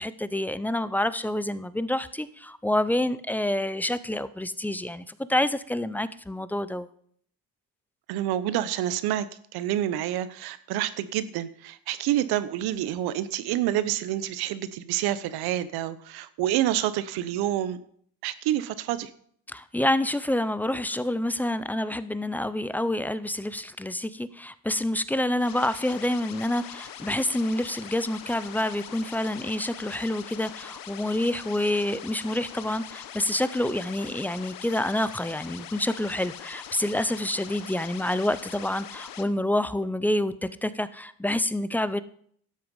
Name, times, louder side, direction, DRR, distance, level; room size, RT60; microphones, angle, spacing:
voice 1, 0.0-6.9 19.5-42.0, left 1 dB, 5° left, 15 dB, 0.4 m, -28 dB
voice 2, 8.1-9.3 9.5-17.8 18.2-19.1, right 12 dB, 70° right, 14 dB, 1.0 m, -28 dB
sound 1, 25.4-39.2, left 10 dB, 55° left, 1.2 m, -42 dB
12.5 x 7.8 x 5.4 m, 0.62 s
supercardioid pair, 105°, 40 cm